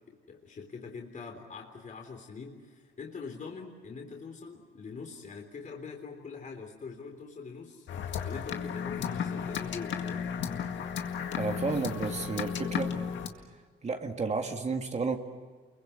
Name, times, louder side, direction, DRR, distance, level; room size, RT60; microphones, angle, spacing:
voice 1, 0.1-7.9 8.2-10.3, left 5 dB, 40° left, 1 dB, 3.7 m, -43 dB
sound 1, 7.9-13.3, left 7 dB, 70° left, 2.0 m, -34 dB
voice 2, 11.4-13.0 13.8-15.2, right 4 dB, 35° right, 4 dB, 2.1 m, -32 dB
29.5 x 23.0 x 8.2 m, 1.5 s
cardioid pair, 90°, 20 cm